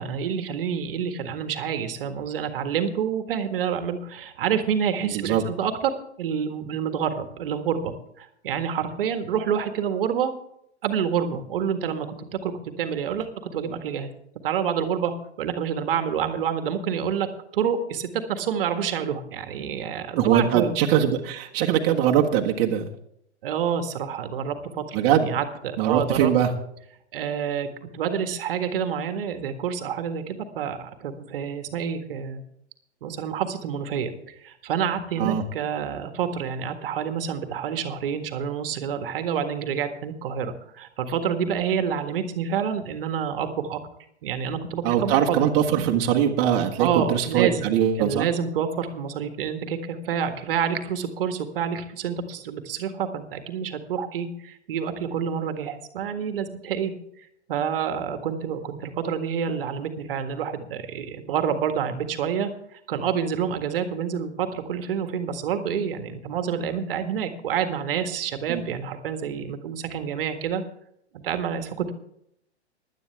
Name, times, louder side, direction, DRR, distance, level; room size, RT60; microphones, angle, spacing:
voice 1, 0.0-10.3 10.8-14.1 14.4-15.1 15.4-17.3 17.5-20.8 23.4-25.0 25.3-26.3 27.1-27.7 27.9-32.4 33.0-43.8 44.2-45.4 46.8-47.7 48.0-56.9 57.5-70.6 71.1-71.9, right 7 dB, 55° right, 8 dB, 1.7 m, -28 dB
voice 2, 5.0-5.4 20.2-22.9 24.9-25.3 25.8-26.5 35.2-35.4 44.8-48.3 68.5-68.6, right 9 dB, 35° right, 0 dB, 1.6 m, -22 dB
16.5 x 11.5 x 3.5 m, 0.74 s
figure-of-eight pair, 115°, 34 cm